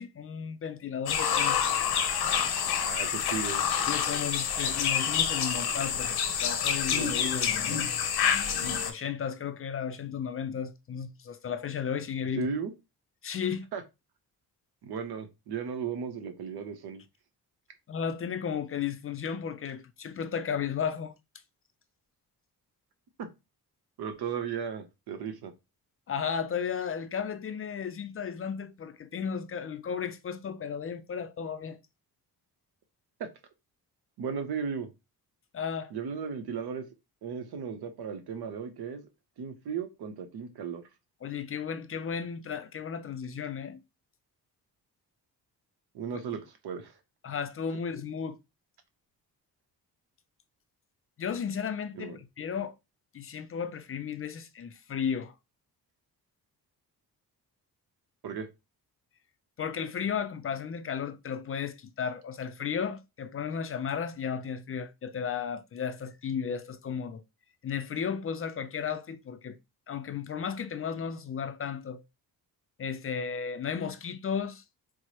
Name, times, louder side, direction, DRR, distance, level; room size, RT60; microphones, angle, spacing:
voice 1, 0.0-1.6 3.9-7.8 8.8-12.5 13.2-13.7 17.9-21.1 26.1-31.8 35.5-35.9 41.2-43.8 47.2-48.4 51.2-52.7 53.1-55.3 59.6-67.2 67.6-69.6 69.9-72.0 72.8-74.6, left 7 dB, 35° left, 0.4 m, -34 dB
sound 1, 1.1-8.9, left 8 dB, 80° left, 0.8 m, -28 dB
voice 2, 2.8-3.6 12.3-12.7 13.7-13.8 14.8-17.0 23.2-23.3 24.0-25.5 33.2-33.3 34.2-34.9 35.9-36.8 37.2-39.1 39.4-40.8 45.9-46.9 52.0-52.2 58.2-58.5, right 6 dB, 80° right, 0.8 m, -35 dB
4.5 x 2.0 x 2.9 m
cardioid pair, 95°, 38 cm